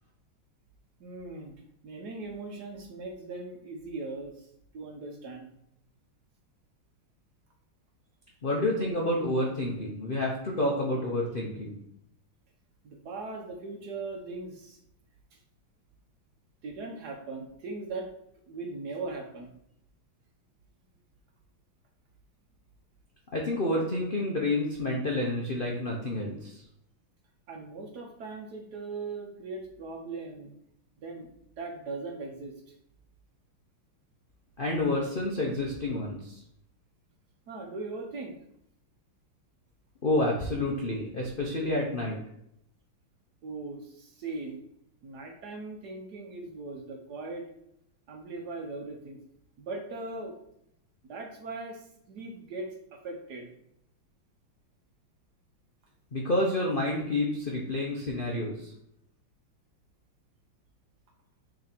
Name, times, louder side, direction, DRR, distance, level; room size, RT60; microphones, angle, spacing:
voice 1, 1.0-5.5 12.8-14.8 15.3-15.4 16.6-18.1 18.4-19.5 27.5-30.5 31.0-31.3 31.6-32.5 37.5-38.4 43.4-44.6 45.0-47.4 48.1-49.2 49.6-50.3 51.0-53.5, right 3 dB, 60° right, 2 dB, 1.2 m, -39 dB
voice 2, 8.4-11.8 23.3-26.6 34.6-36.4 40.0-42.2 56.1-58.7, left 1 dB, 60° left, -2 dB, 0.5 m, -29 dB
6.5 x 3.3 x 4.3 m, 0.76 s
omnidirectional pair, 2.3 m